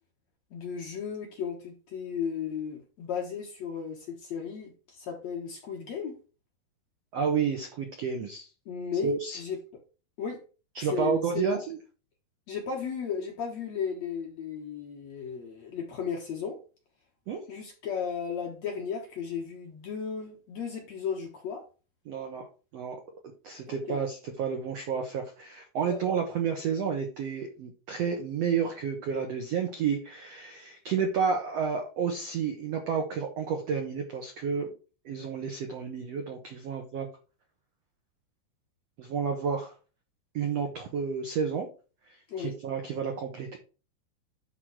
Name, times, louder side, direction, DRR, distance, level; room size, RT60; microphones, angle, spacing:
voice 1, 0.5-6.2 8.7-9.6 10.2-10.4 10.8-11.6 12.5-16.6 17.5-21.6 23.9-24.0 25.9-26.0 42.3-42.6, left 6 dB, 60° left, 1.9 m, -35 dB
voice 2, 7.1-8.5 9.0-9.4 10.7-11.8 17.3-17.4 22.0-22.5 22.7-23.0 23.4-34.7 35.0-37.1 39.0-39.7 40.3-41.7 42.4-43.6, right 6 dB, 85° right, 1.4 m, -30 dB
10.5 x 3.9 x 4.7 m
omnidirectional pair, 4.7 m